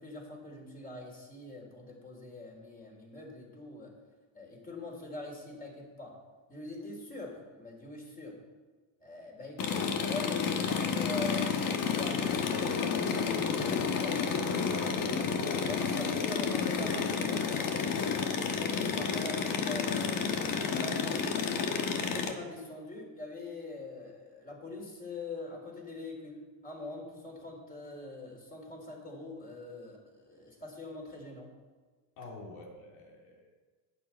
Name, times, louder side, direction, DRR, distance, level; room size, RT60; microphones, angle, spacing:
voice 1, 0.0-3.9 4.3-6.2 6.5-8.4 9.0-14.2 15.7-17.5 18.0-18.3 18.6-21.5 22.0-31.5, left 2 dB, 20° left, 0 dB, 3.5 m, -43 dB
sound 1, 9.6-22.3, left 6 dB, 45° left, 1.4 m, -30 dB
voice 2, 15.1-15.9 32.2-33.5, left 2 dB, 75° left, 0 dB, 3.1 m, -47 dB
11.5 x 9.1 x 4.5 m, 1.4 s
supercardioid pair, 115°, 47 cm